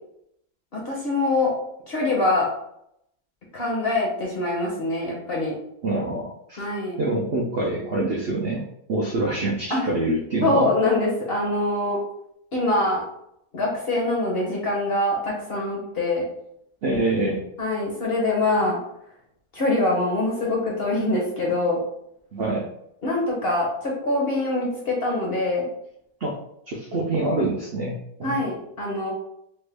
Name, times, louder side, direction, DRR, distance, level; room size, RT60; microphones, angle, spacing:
voice 1, 0.7-1.5 1.9-2.5 3.5-5.5 6.6-7.0 9.7-9.8 10.4-12.0 12.5-13.0 13.5-16.2 17.6-18.8 19.5-21.8 23.0-25.7 28.2-29.1, left 2 dB, 55° left, -3 dB, 0.7 m, -24 dB
voice 2, 5.8-6.7 7.0-8.6 8.9-10.7 16.8-17.4 22.3-22.7 26.2-26.4 26.7-28.4, right 2 dB, 70° right, -2 dB, 0.5 m, -25 dB
3.3 x 2.1 x 3.3 m, 0.76 s
omnidirectional pair, 1.6 m